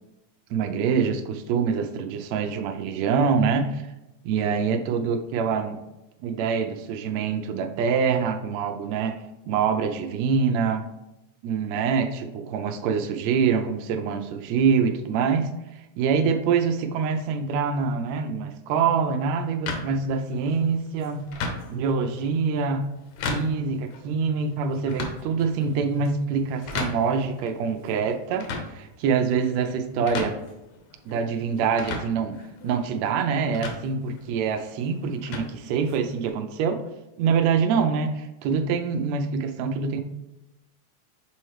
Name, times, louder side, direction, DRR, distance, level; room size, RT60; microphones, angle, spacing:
voice 1, 0.5-3.9 4.2-5.8 6.2-9.2 9.5-10.9 11.4-15.5 16.0-21.3 21.7-22.8 23.2-30.3 31.1-32.4 32.6-36.8 37.2-40.0, right 6 dB, 75° right, 6 dB, 1.7 m, -25 dB
sound 1, 19.7-36.3, left 3 dB, 70° left, 2.1 m, -37 dB
7.0 x 4.4 x 3.2 m, 0.97 s
omnidirectional pair, 3.5 m